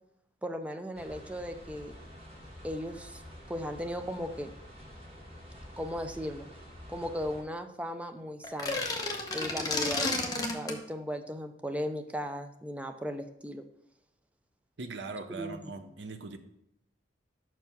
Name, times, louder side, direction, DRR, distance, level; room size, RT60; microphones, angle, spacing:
voice 1, 0.4-1.9 2.6-3.2 3.5-4.5 5.8-6.5 6.9-8.8 9.3-13.6 15.3-15.6, equal, 5° right, 7 dB, 0.4 m, -37 dB
sound 1, 0.9-7.4, equal, 35° right, 1.7 m, -49 dB
sound 2, 8.4-10.8, left 3 dB, 20° left, 0.8 m, -31 dB
voice 2, 14.8-16.4, right 3 dB, 70° right, 8 dB, 0.7 m, -40 dB
6.0 x 4.6 x 5.3 m, 0.76 s
head